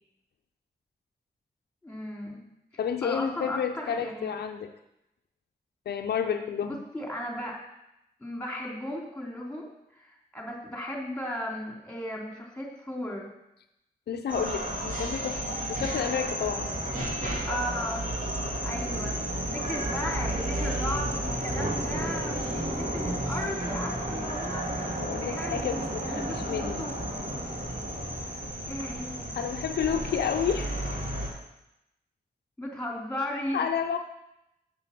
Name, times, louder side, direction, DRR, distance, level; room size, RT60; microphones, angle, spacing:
voice 1, 1.8-2.4 3.0-4.3 6.6-7.6 8.2-9.7 9.9-13.3 17.4-18.1 18.6-19.1 19.5-26.9 28.7-29.2 32.6-33.6, left 1 dB, 5° left, -1 dB, 3.3 m, -36 dB
voice 2, 2.8-4.7 5.9-6.8 14.1-16.7 25.0-26.9 29.4-31.0 33.5-34.0, left 7 dB, 85° left, 6 dB, 0.5 m, -30 dB
sound 1, 14.3-31.3, right 1 dB, 55° right, 3.0 m, -32 dB
6.9 x 6.9 x 5.9 m, 0.87 s
cardioid pair, 40°, 16 cm